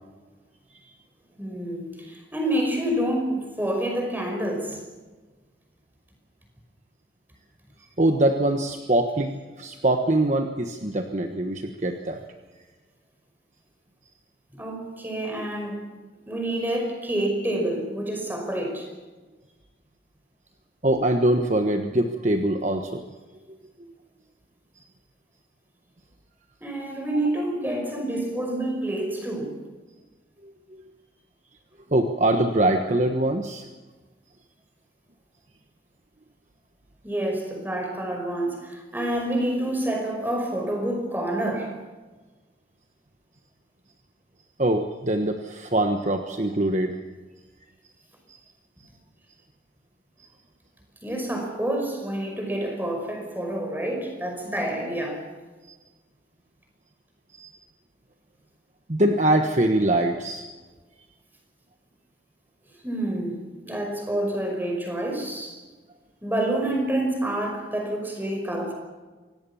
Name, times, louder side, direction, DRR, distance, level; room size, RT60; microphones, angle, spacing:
voice 1, 1.4-4.8 14.5-15.9 16.3-18.9 26.6-29.6 37.0-41.7 51.0-55.2 62.8-65.6 66.2-68.7, right 1 dB, 10° right, 5.4 m, -28 dB
voice 2, 8.0-12.2 20.8-23.0 30.7-30.8 31.9-33.7 44.6-47.0 48.3-48.4 57.4-57.5 58.9-60.5, right 1 dB, 40° right, 1.3 m, -23 dB
25.5 x 18.0 x 7.2 m
head